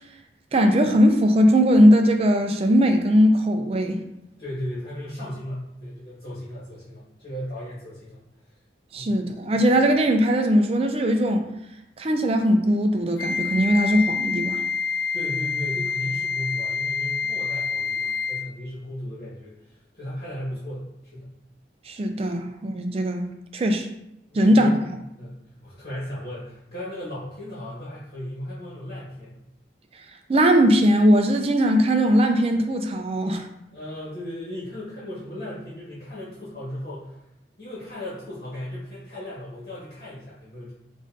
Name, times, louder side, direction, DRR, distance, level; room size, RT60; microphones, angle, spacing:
voice 1, 0.5-4.0 8.9-11.5 12.0-14.6 21.9-23.2 23.5-23.9 24.3-24.7 30.3-33.5, equal, 35° right, 5 dB, 0.4 m, -19 dB
voice 2, 4.4-8.2 8.9-9.2 15.1-21.3 24.3-25.4 25.6-29.4 33.7-37.2 37.6-40.7, left 1 dB, 45° left, -9 dB, 1.4 m, -36 dB
Wind instrument woodwind instrument, 13.2-18.5, left 5 dB, 75° left, 0.4 m, -27 dB
5.3 x 2.6 x 2.6 m, 0.84 s
head